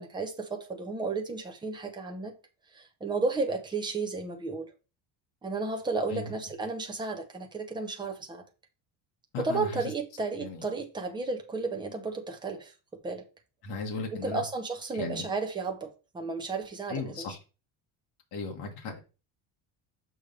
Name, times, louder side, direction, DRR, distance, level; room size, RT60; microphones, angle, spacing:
voice 1, 0.0-2.3 2.7-4.7 5.4-8.4 9.4-13.2 14.1-17.3, right 3 dB, 10° right, 0.7 m, -33 dB
voice 2, 9.3-9.8 10.4-10.6 13.6-14.4 14.9-15.2 16.9-17.4 18.3-19.0, left 3 dB, 50° left, 1.7 m, -36 dB
6.6 x 5.4 x 3.2 m
cardioid pair, 175°, 48 cm